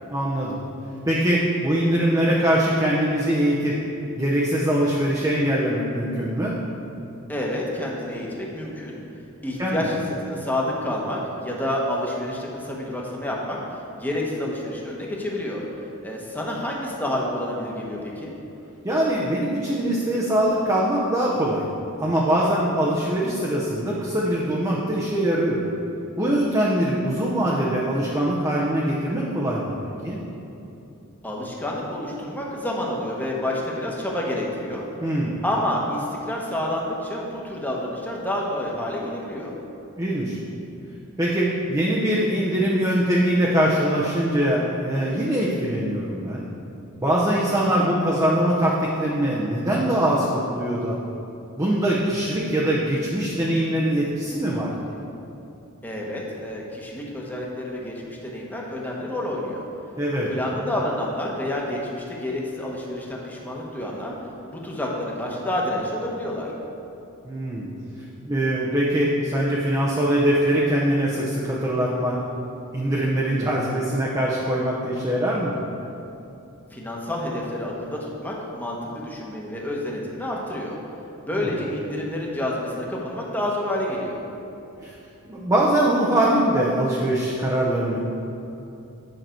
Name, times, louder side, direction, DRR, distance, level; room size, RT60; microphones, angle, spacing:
voice 1, 0.1-0.6 1.0-3.8 4.2-6.6 9.6-9.9 18.8-21.7 22.0-25.6 26.2-29.8 30.0-30.2 35.0-35.4 40.0-40.4 41.2-46.4 47.0-51.0 51.6-54.7 60.0-60.3 67.2-67.7 68.2-72.2 72.7-75.6 81.4-81.5 84.8-84.9 85.2-88.0, right 1 dB, 15° right, -5 dB, 0.7 m, -22 dB
voice 2, 7.3-9.0 9.4-13.6 13.9-15.6 16.0-18.3 31.2-34.9 35.4-39.5 55.8-59.6 60.3-64.1 64.5-66.5 76.7-80.8 81.2-84.2, left 1 dB, 10° left, -3 dB, 1.1 m, -29 dB
9.3 x 5.9 x 4.5 m, 2.8 s
head